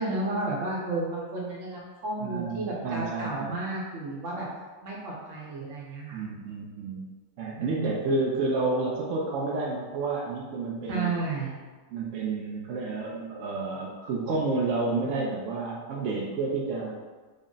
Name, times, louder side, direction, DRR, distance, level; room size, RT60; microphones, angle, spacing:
voice 1, 0.0-4.5 4.8-6.2 7.6-7.9 10.9-11.5, right 2 dB, 55° right, -4 dB, 1.0 m, -32 dB
voice 2, 2.2-3.6 6.1-7.0 7.4-11.2 11.9-17.0, right 3 dB, 75° right, -3 dB, 0.7 m, -30 dB
3.6 x 2.1 x 3.8 m, 1.3 s
omnidirectional pair, 1.8 m